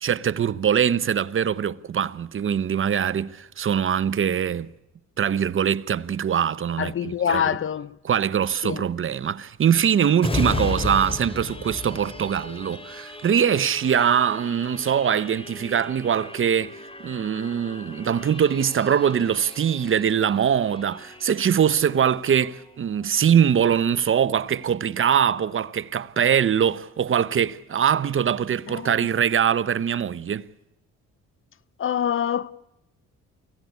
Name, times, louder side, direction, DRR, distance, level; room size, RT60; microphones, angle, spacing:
voice 1, 0.0-4.7 5.2-7.4 8.0-30.4, right 8 dB, 45° right, 0.9 m, -22 dB
voice 2, 6.8-8.0 8.6-8.8 28.7-29.0 31.8-32.5, left 8 dB, 45° left, 0.8 m, -25 dB
sound 1, 10.2-23.5 24.0-24.1, left 3 dB, 20° left, 2.5 m, -36 dB
25.0 x 16.0 x 9.4 m
cardioid pair, 90°, 30 cm